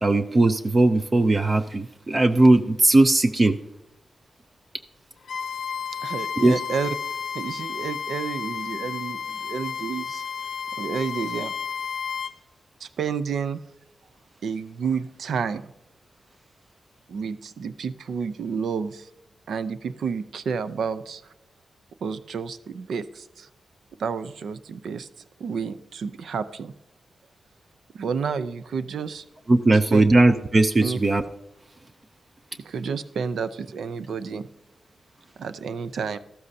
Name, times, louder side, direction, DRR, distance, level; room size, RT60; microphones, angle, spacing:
voice 1, 0.0-3.6 6.4-6.5 29.5-31.2, right 2 dB, 25° right, 8 dB, 0.5 m, -18 dB
Bowed string instrument, 5.2-12.3, left 7 dB, 65° left, 0.6 m, -32 dB
voice 2, 6.0-7.0 7.3-10.2 10.8-11.5 12.8-13.6 14.4-15.7 17.1-19.1 19.5-21.3 22.0-23.5 24.0-25.1 25.4-26.7 27.9-29.2 29.7-30.0 30.8-31.0 32.6-34.5 35.4-36.2, right 6 dB, 85° right, 13 dB, 0.6 m, -30 dB
13.5 x 13.0 x 2.7 m, 0.92 s
wide cardioid pair, 140°, 0 cm